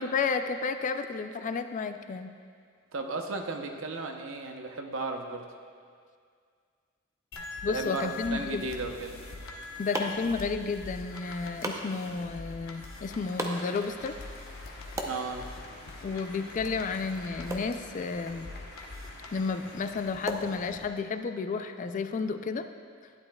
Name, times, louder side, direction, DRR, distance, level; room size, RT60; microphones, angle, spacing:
voice 1, 0.0-2.4 7.6-8.7 9.8-14.2 16.0-18.5 19.3-22.7, left 4 dB, 40° left, 9 dB, 0.3 m, -32 dB
voice 2, 2.9-5.5 7.7-9.1 15.0-15.5, right 3 dB, 65° right, 3 dB, 0.7 m, -35 dB
sound 1, 7.3-20.9, left 3 dB, 75° left, 0.9 m, -44 dB
sound 2, 9.3-21.2, right 1 dB, 15° right, 0.6 m, -42 dB
sound 3, 12.5-20.2, left 2 dB, 55° left, 1.1 m, -50 dB
12.0 x 10.0 x 2.3 m, 2.1 s
head